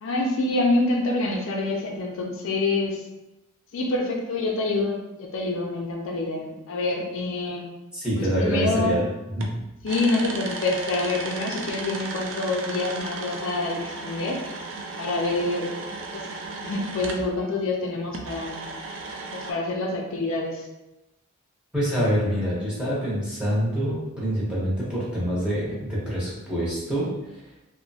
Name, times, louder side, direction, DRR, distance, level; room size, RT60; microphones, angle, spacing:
voice 1, 0.0-3.0 3.7-7.7 8.2-9.0 9.8-14.4 15.0-15.7 16.1-16.3 16.6-18.6 19.3-20.7, left 2 dB, 60° left, 0 dB, 0.4 m, -26 dB
voice 2, 7.9-9.0 9.3-9.5 21.7-27.1, equal, 5° right, -9 dB, 0.8 m, -25 dB
sound 1, 9.4-17.3 18.1-19.5, right 3 dB, 55° right, 0.3 m, -35 dB
2.8 x 2.1 x 2.7 m, 0.96 s
head